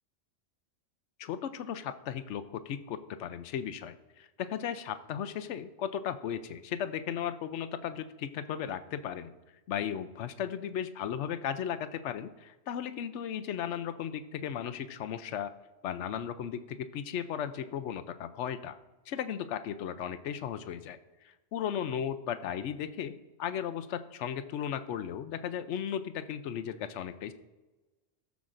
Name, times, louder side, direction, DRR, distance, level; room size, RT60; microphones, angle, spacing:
voice 1, 1.2-9.3 9.7-15.5 15.8-18.7 19.1-21.0 21.5-27.3, left 9 dB, 85° left, 10 dB, 0.9 m, -36 dB
16.0 x 7.1 x 2.5 m, 1.1 s
omnidirectional pair, 1.2 m